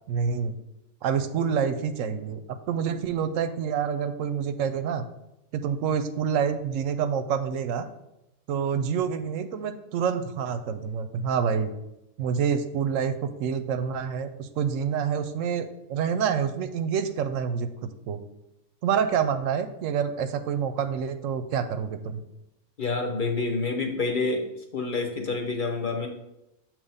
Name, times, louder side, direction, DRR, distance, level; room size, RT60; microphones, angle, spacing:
voice 1, 0.1-0.6 1.0-2.4 2.7-5.0 5.5-7.9 8.5-11.7 12.2-17.7 18.1-18.2 18.8-22.2, right 7 dB, 90° right, 10 dB, 1.0 m, -27 dB
voice 2, 22.8-24.4 24.7-26.1, left 3 dB, 45° left, 2 dB, 0.9 m, -27 dB
6.5 x 3.0 x 5.4 m, 0.88 s
omnidirectional pair, 1.3 m